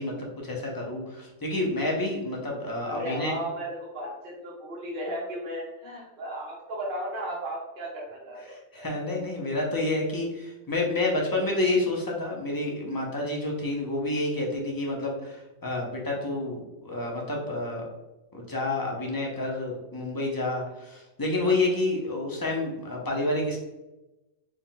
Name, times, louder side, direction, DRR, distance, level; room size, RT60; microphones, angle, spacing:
voice 1, 0.0-3.3 8.5-17.8 18.3-23.6, left 2 dB, 25° left, -1 dB, 0.5 m, -29 dB
voice 2, 2.9-8.8, right 1 dB, 45° right, -4 dB, 1.3 m, -35 dB
4.4 x 2.3 x 3.7 m, 1.0 s
omnidirectional pair, 1.4 m